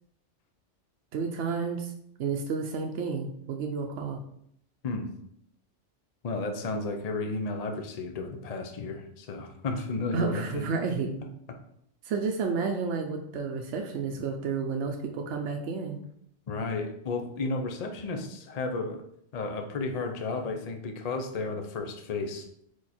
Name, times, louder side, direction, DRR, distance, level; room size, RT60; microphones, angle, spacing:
voice 1, 1.1-1.9 2.2-4.2 10.1-11.2 12.0-16.0, right 5 dB, 70° right, 3 dB, 0.9 m, -31 dB
voice 2, 6.2-10.6 11.5-11.6 16.5-19.0 19.3-22.5, left 3 dB, 40° left, 5 dB, 0.7 m, -33 dB
4.7 x 4.7 x 4.2 m, 0.72 s
omnidirectional pair, 1.2 m